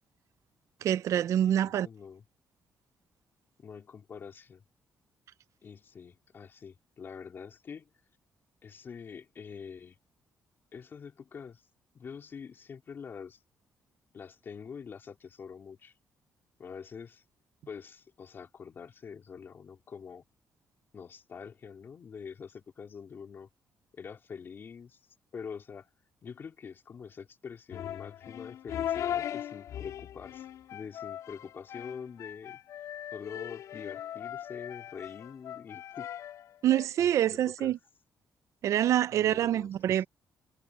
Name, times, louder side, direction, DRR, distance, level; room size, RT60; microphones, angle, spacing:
voice 1, 0.8-1.9 36.6-37.8 38.6-40.1, right 11 dB, 65° right, 0.5 m, -26 dB
voice 2, 1.4-2.2 3.6-4.6 5.6-7.9 8.6-10.0 10.7-11.6 11.9-13.4 14.1-15.9 16.6-17.2 17.7-20.2 20.9-23.5 23.9-25.0 25.3-25.9 26.2-30.5 30.7-36.1 37.0-37.7 39.1-39.8, left 6 dB, 40° left, 4.1 m, -45 dB
sound 1, 27.7-36.9, left 10 dB, 75° left, 3.6 m, -39 dB
cardioid pair, 145°, 6 cm